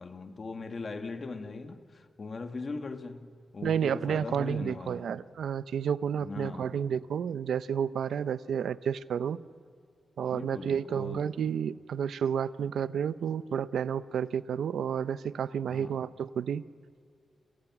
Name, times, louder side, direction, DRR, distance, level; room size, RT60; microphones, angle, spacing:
voice 1, 0.0-5.1 6.2-6.8 10.3-11.4 15.7-16.0, left 3 dB, 40° left, 1.7 m, -40 dB
voice 2, 3.6-9.4 10.2-16.6, right 8 dB, 90° right, 0.7 m, -31 dB
30.0 x 27.5 x 6.1 m
wide cardioid pair, 125°, 0 cm